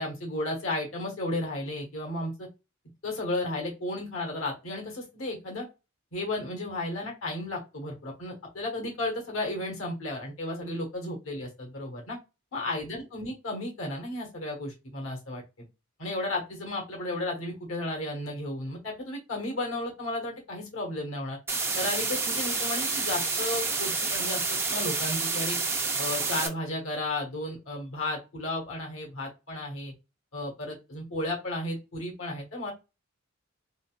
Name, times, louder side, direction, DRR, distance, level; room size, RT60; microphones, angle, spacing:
voice 1, 0.0-2.5 3.0-5.7 6.1-12.2 12.5-15.4 16.0-21.4 21.7-25.6 26.0-29.9 30.3-32.7, left 1 dB, 75° left, 0 dB, 1.3 m, -33 dB
sound 1, 21.5-26.5, right 4 dB, 10° right, 0.4 m, -29 dB
3.8 x 2.2 x 2.4 m, 0.25 s
head